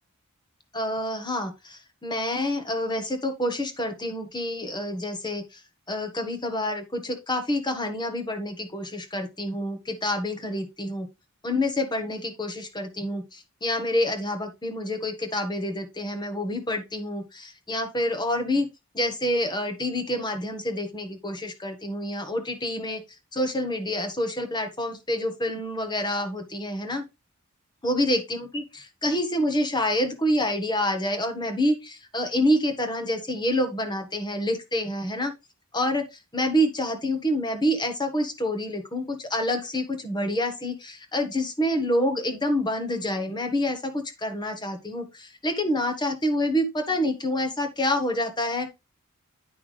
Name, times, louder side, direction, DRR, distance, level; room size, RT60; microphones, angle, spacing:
voice 1, 0.7-5.6 5.9-11.1 11.4-18.7 18.9-23.0 23.3-27.0 27.8-35.3 35.7-48.7, left 1 dB, 20° left, 6 dB, 1.3 m, -27 dB
9.2 x 5.9 x 3.3 m, 0.24 s
head